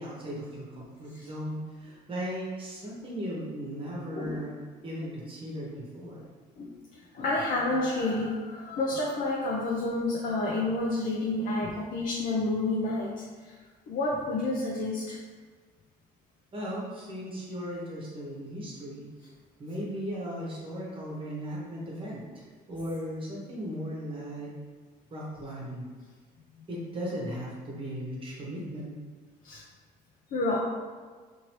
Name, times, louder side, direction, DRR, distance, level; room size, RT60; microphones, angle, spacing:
voice 1, 0.0-4.5 4.8-6.2 16.5-19.1 19.6-24.5 25.1-25.9 26.7-28.9, equal, 30° right, -5 dB, 1.0 m, -37 dB
voice 2, 7.1-13.5 13.9-15.2 29.4-29.6 30.3-30.6, left 2 dB, 55° left, -4 dB, 0.5 m, -29 dB
2.8 x 2.6 x 3.0 m, 1.5 s
cardioid pair, 110°, 17 cm